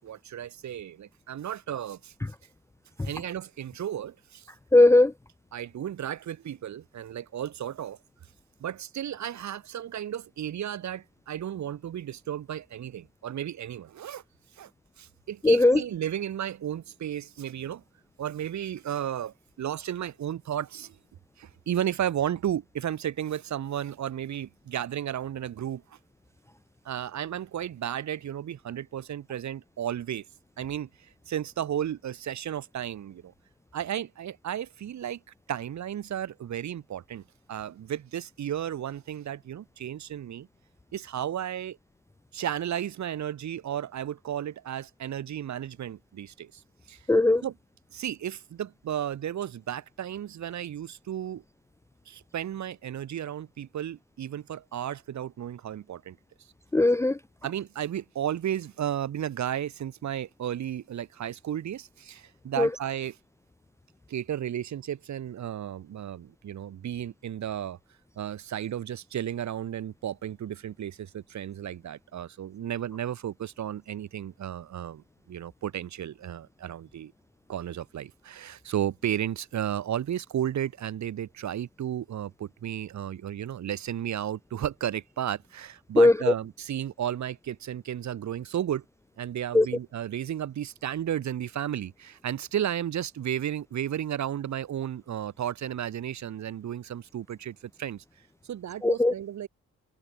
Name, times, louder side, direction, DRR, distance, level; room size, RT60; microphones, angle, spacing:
voice 1, 0.0-2.1 3.0-4.5 5.5-8.0 8.6-14.2 14.6-14.7 15.0-17.8 18.2-21.0 21.4-25.8 26.8-30.2 30.6-33.3 33.7-35.2 35.5-37.2 37.5-40.5 40.9-41.8 42.3-46.6 46.9-47.0 47.4-47.6 47.9-51.4 52.1-56.2 57.4-63.2 64.1-67.8 68.2-77.1 77.5-88.8 89.2-98.0 98.5-99.5, right 10 dB, 65° right, 7.6 m, -33 dB
voice 2, 4.7-5.1 15.4-15.8 47.1-47.4 56.7-57.1 62.6-62.7 86.0-86.1 89.5-89.7 98.8-99.1, left 2 dB, 10° left, 0.5 m, -18 dB
cardioid pair, 90°, 30 cm